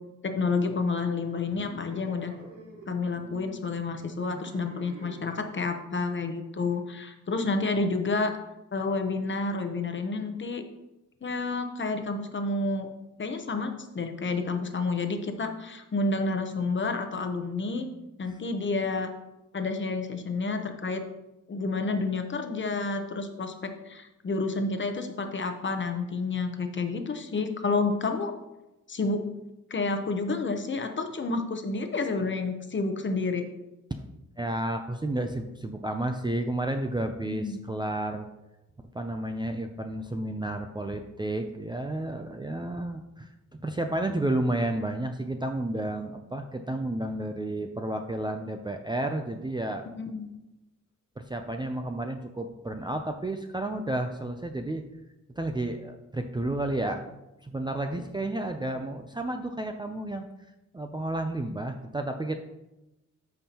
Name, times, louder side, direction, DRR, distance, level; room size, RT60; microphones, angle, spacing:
voice 1, 0.2-2.3 2.9-8.4 8.7-10.6 11.2-12.9 13.2-17.9 18.2-19.1 19.5-21.1 21.5-28.3 28.9-29.2 29.7-33.5 37.3-37.7 49.9-50.3, left 3 dB, 40° left, 6 dB, 0.8 m, -30 dB
sound 1, 1.5-5.5, right 2 dB, 75° right, 2.6 m, -47 dB
voice 2, 34.4-38.3 38.9-49.8 51.2-54.8 55.3-57.0 57.4-60.3 60.7-62.4, right 1 dB, 15° right, 4 dB, 0.4 m, -31 dB
13.5 x 5.5 x 2.9 m, 0.96 s
wide cardioid pair, 155°, 31 cm